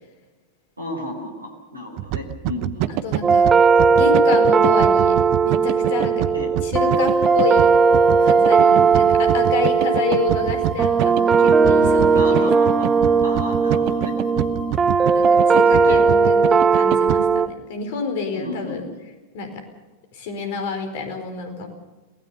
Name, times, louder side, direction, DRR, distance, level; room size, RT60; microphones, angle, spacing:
voice 1, 0.8-3.0 3.7-3.9 6.3-6.5 8.7-8.9 12.1-12.9 13.2-14.7 15.5-16.0 18.3-18.8, left 1 dB, 80° right, 4 dB, 4.2 m, -33 dB
sound 1, 2.0-17.2, right 15 dB, 45° right, 0.9 m, -26 dB
voice 2, 3.0-3.5 3.9-6.3 6.6-6.7 7.0-7.7 8.2-12.5 15.1-18.8 19.3-19.6 20.1-21.7, left 4 dB, 50° left, 7 dB, 4.5 m, -28 dB
sound 2, 3.2-17.5, right 5 dB, 20° right, 0.9 m, -17 dB
sound 3, 6.9-15.5, right 2 dB, 15° left, 4.8 m, -39 dB
24.0 x 19.0 x 6.8 m, 1.2 s
figure-of-eight pair, 90°, 0 cm